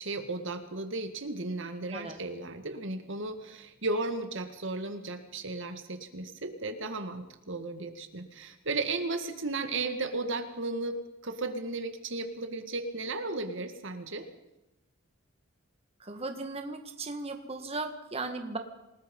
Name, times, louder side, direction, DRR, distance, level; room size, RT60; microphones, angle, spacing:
voice 1, 0.0-14.3, right 3 dB, 60° right, 8 dB, 2.0 m, -35 dB
voice 2, 16.0-18.6, right 3 dB, 30° right, 5 dB, 1.8 m, -37 dB
27.5 x 19.5 x 5.5 m, 0.95 s
head